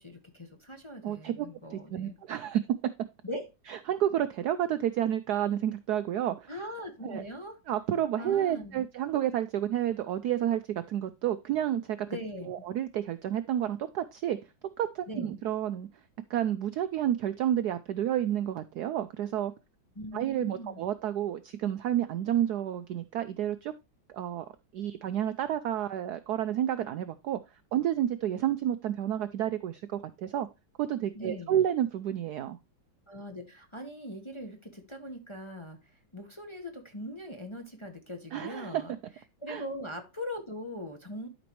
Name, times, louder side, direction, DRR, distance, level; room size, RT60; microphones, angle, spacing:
voice 1, 0.0-2.2 3.2-3.5 6.5-7.6 8.2-8.8 12.1-12.6 15.1-15.4 19.9-20.8 31.1-31.6 33.1-38.9 39.4-41.3, equal, 20° left, 3 dB, 1.0 m, -41 dB
voice 2, 1.0-2.6 3.7-6.5 7.0-7.2 7.7-12.1 12.5-14.4 14.8-15.9 16.3-19.5 20.1-23.7 24.1-24.4 24.7-27.4 27.7-30.5 30.8-32.6 38.3-38.8 39.5-39.6, right 11 dB, 75° right, 12 dB, 0.9 m, -30 dB
12.0 x 5.2 x 3.0 m, 0.26 s
omnidirectional pair, 2.2 m